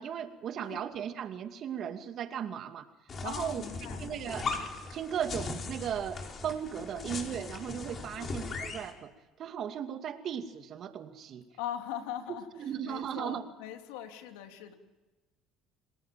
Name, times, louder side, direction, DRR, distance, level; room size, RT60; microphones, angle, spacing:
voice 1, 0.0-2.9 3.2-3.6 4.0-4.5 4.9-9.1 9.4-11.4 12.6-13.4, right 9 dB, 55° right, 7 dB, 2.4 m, -36 dB
sound 1, 3.1-8.9, left 4 dB, 40° left, 5.1 m, -39 dB
voice 2, 3.2-4.0 6.9-7.1 8.1-8.4 11.6-14.7, left 10 dB, 85° left, 5 dB, 3.1 m, -41 dB
28.5 x 19.5 x 7.6 m, 1.2 s
supercardioid pair, 85°, 0 cm